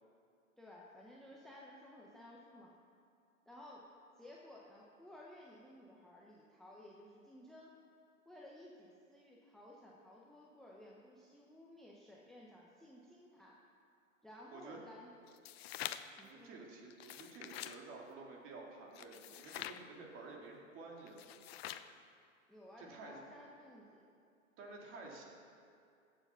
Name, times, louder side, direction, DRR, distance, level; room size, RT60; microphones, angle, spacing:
voice 1, 0.6-2.7 3.5-3.9 4.2-7.7 8.3-13.6 14.2-15.1 16.2-16.5 22.5-24.0, left 1 dB, ahead, -4 dB, 0.8 m, -56 dB
sound 1, 15.3-16.2 16.9-17.8 18.9-19.8 21.1-21.9, left 12 dB, 50° left, 0.6 m, -46 dB
voice 2, 16.2-21.3 22.8-23.2 24.6-25.2, right 3 dB, 30° right, -1 dB, 2.5 m, -51 dB
16.0 x 7.7 x 5.6 m, 2.4 s
hypercardioid pair, 120°, 40 cm